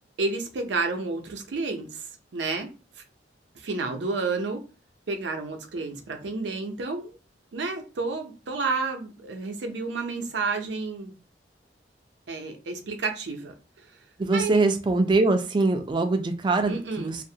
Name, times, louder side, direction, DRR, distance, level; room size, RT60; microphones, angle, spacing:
voice 1, 0.2-2.7 3.5-4.6 5.1-7.2 7.5-11.1 12.3-13.9 14.3-14.6 16.7-17.2, right 3 dB, 85° right, 0.5 m, -30 dB
voice 2, 14.2-17.2, right 3 dB, 25° right, 0.3 m, -23 dB
2.5 x 2.0 x 2.7 m
head